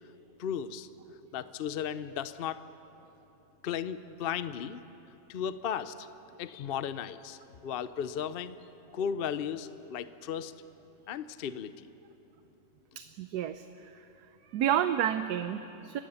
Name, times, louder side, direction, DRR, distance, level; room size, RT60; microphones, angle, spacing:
voice 1, 0.4-0.9 1.3-2.6 3.6-4.8 5.3-6.1 6.4-8.6 8.9-10.5 11.1-11.9, left 8 dB, 75° left, 13 dB, 0.5 m, -35 dB
voice 2, 13.0-14.0 14.5-16.0, right 10 dB, 70° right, 10 dB, 1.1 m, -30 dB
30.0 x 17.0 x 7.1 m, 3.0 s
omnidirectional pair, 1.9 m